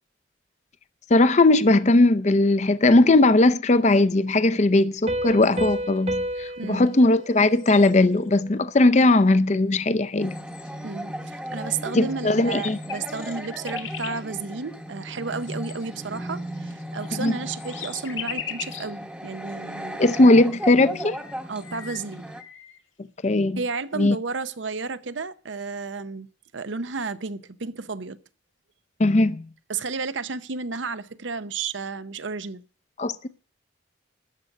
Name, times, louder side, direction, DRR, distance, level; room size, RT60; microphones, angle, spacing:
voice 1, 1.1-10.4 11.9-12.8 17.2-17.3 20.0-21.2 23.2-23.6 24.0-24.2 29.0-29.5 33.0-33.3, left 2 dB, 35° left, 0.5 m, -19 dB
Piano, 5.1-8.5, right 1 dB, 35° right, 1.0 m, -31 dB
sound 1, 5.4-6.0 6.9-7.0 7.3-8.3 9.1-9.2 9.9-10.0 10.3-10.9 12.0-12.1 12.4-14.2 15.4-18.9 19.5-19.6 20.7-20.8 21.1-22.8, left 8 dB, 85° left, 1.8 m, -39 dB
voice 2, 6.6-6.9 10.8-20.0 21.5-22.3 23.6-26.3 26.5-28.2 29.7-32.6, right 4 dB, 75° right, 0.8 m, -32 dB
sound 2, 10.2-22.4, equal, 5° right, 1.0 m, -36 dB
13.0 x 5.3 x 9.2 m
head